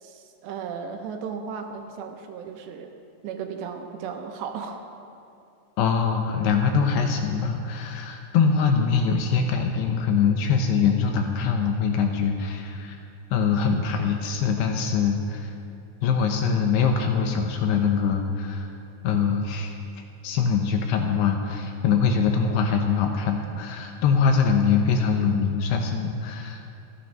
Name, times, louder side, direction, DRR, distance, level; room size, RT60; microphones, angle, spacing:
voice 1, 0.0-2.9 3.2-4.8, right 6 dB, 75° right, 5 dB, 2.8 m, -35 dB
voice 2, 5.8-13.0 13.3-15.5 16.0-18.7 19.0-19.8 20.2-26.6, left 6 dB, 75° left, 4 dB, 2.6 m, -23 dB
24.5 x 9.2 x 5.4 m, 2.6 s
omnidirectional pair, 5.5 m